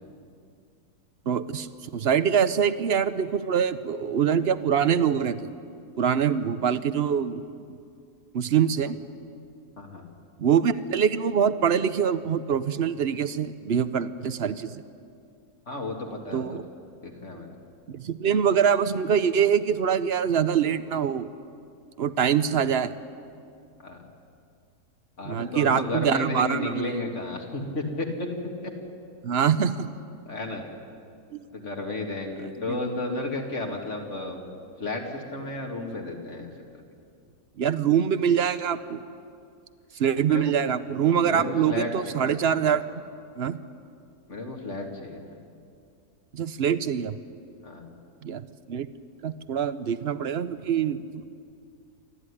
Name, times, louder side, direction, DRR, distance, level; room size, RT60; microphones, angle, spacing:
voice 1, 1.3-5.4 6.0-7.8 8.3-9.0 10.4-14.8 16.3-16.6 17.9-21.3 22.0-22.9 25.2-27.0 29.2-29.9 31.3-31.4 32.7-32.8 37.6-39.0 40.0-42.8 43.4-43.6 46.3-47.2 48.2-48.9 49.2-51.3, right 8 dB, 55° right, 13 dB, 0.8 m, -24 dB
voice 2, 15.7-16.6 17.0-17.5 23.8-24.0 25.2-28.3 28.6-28.7 30.3-30.7 31.5-34.5 34.8-36.8 40.3-40.6 41.2-42.2 44.3-45.2 47.6-47.9, left 2 dB, 50° left, 1 dB, 2.8 m, -33 dB
27.5 x 12.5 x 9.9 m, 2.4 s
omnidirectional pair, 1.7 m